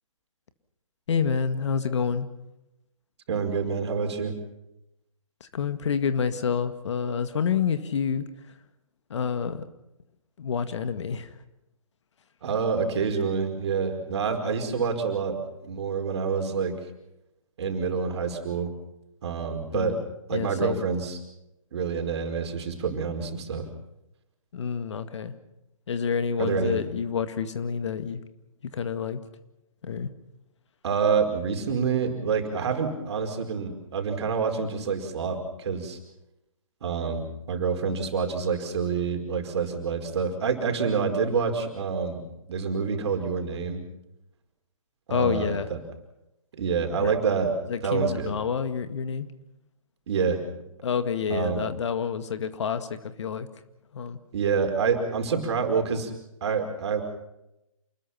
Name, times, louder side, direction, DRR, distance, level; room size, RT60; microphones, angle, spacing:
voice 1, 1.1-2.3 5.4-8.6 9.1-9.7 10.4-11.4 19.7-20.1 20.3-20.9 24.5-25.3 25.9-28.2 28.7-29.2 29.8-30.1 45.1-45.7 47.0-47.1 47.7-49.3 50.8-53.5 53.9-54.2 55.6-55.7, left 6 dB, 55° left, 10 dB, 2.0 m, -28 dB
voice 2, 3.3-4.3 12.4-15.4 15.6-16.8 17.6-18.7 19.2-20.0 20.3-21.2 21.7-23.7 26.4-26.8 30.8-36.0 36.8-42.2 42.5-43.8 45.1-45.5 46.6-47.5 47.8-48.3 50.1-50.4 51.3-51.6 54.3-56.1 56.4-57.0, right 5 dB, 50° right, 5 dB, 4.9 m, -27 dB
28.0 x 20.5 x 5.9 m, 0.89 s
figure-of-eight pair, 140°, 18 cm